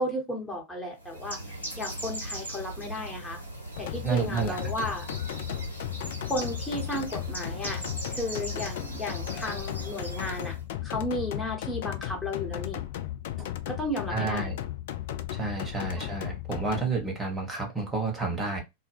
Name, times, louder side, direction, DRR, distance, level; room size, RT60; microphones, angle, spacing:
voice 1, 0.0-1.4 1.8-3.4 3.8-5.1 6.3-10.6 10.8-12.8 13.7-14.5 16.0-16.2, left 1 dB, 10° left, 1.0 m, -34 dB
Bird, 1.0-10.6, right 1 dB, 80° left, 0.9 m, -39 dB
sound 1, 3.8-16.8, left 12 dB, 55° left, 0.3 m, -35 dB
voice 2, 4.0-4.7 13.4-13.5 14.1-14.6 15.3-18.6, right 4 dB, 15° right, 1.0 m, -30 dB
2.1 x 2.1 x 3.3 m
figure-of-eight pair, 90°, 0 cm